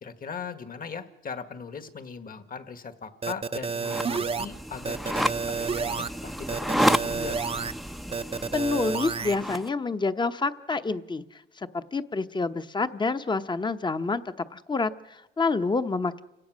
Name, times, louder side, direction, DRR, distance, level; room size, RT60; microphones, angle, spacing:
voice 1, 0.0-6.3 6.7-7.4, left 6 dB, 45° left, 10 dB, 1.7 m, -39 dB
sound 1, 3.2-4.5 4.8-6.1 6.5-7.7 8.1-9.4, right 5 dB, 30° right, 0.7 m, -30 dB
sound 2, 3.8-9.7, equal, ahead, 0.7 m, -30 dB
voice 2, 8.5-11.2 11.6-14.2 14.5-16.2, left 3 dB, 20° left, 10 dB, 0.9 m, -28 dB
29.5 x 17.5 x 6.3 m, 0.99 s
cardioid pair, 90°, 20 cm